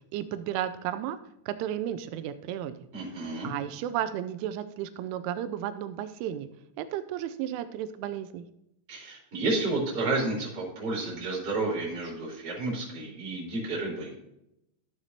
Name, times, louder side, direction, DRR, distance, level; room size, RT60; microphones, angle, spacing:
voice 1, 0.1-1.2 1.5-2.8 3.2-6.5 6.8-8.5, right 11 dB, 90° right, 12 dB, 3.1 m, -33 dB
voice 2, 2.9-3.5 8.9-14.1, right 2 dB, 20° right, -5 dB, 4.4 m, -31 dB
14.0 x 8.0 x 2.8 m, 0.82 s
omnidirectional pair, 5.6 m